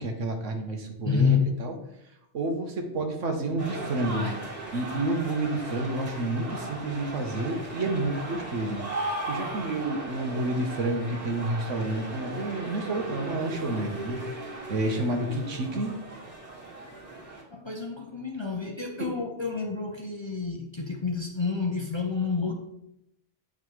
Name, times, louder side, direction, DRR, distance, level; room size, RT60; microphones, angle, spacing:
voice 1, 0.0-1.7 2.3-4.3 4.7-8.8 9.0-15.9, right 2 dB, 90° right, 3 dB, 1.4 m, -30 dB
voice 2, 1.0-1.5 17.5-22.5, left 5 dB, 35° left, 1 dB, 0.5 m, -28 dB
sound 1, 3.6-17.4, right 2 dB, 35° right, 1.9 m, -37 dB
8.8 x 4.9 x 3.2 m, 0.81 s
omnidirectional pair, 1.2 m